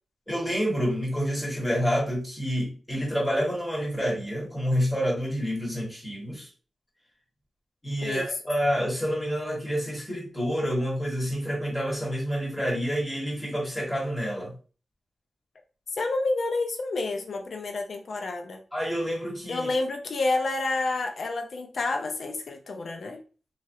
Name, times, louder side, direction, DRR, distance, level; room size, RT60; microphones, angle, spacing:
voice 1, 0.3-6.5 7.8-14.5 18.7-19.7, equal, 15° left, 1.7 m, -28 dB
voice 2, 15.9-18.6 19.5-23.2, left 3 dB, 65° left, 0.5 m, -29 dB
2.9 x 2.8 x 2.7 m
cardioid pair, 70°, 0 cm